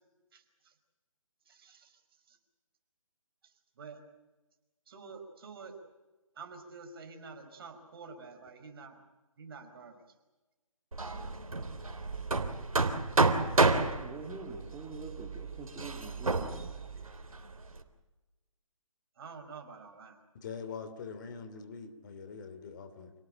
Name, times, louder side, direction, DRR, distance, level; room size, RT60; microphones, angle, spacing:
voice 1, 0.3-0.7 1.5-2.0 2.3-2.4 3.8-4.0 4.9-5.8 6.4-9.0 9.4-10.0 19.2-20.2, right 5 dB, 45° right, 5 dB, 5.3 m, -48 dB
Hammer, 10.9-17.8, right 3 dB, 80° right, 3.4 m, -30 dB
voice 2, 13.9-17.2, right 4 dB, 10° right, 0 dB, 2.5 m, -45 dB
voice 3, 20.4-23.1, left 5 dB, 35° left, 9 dB, 2.9 m, -43 dB
28.5 x 18.5 x 9.0 m, 1.1 s
figure-of-eight pair, 150°, 18 cm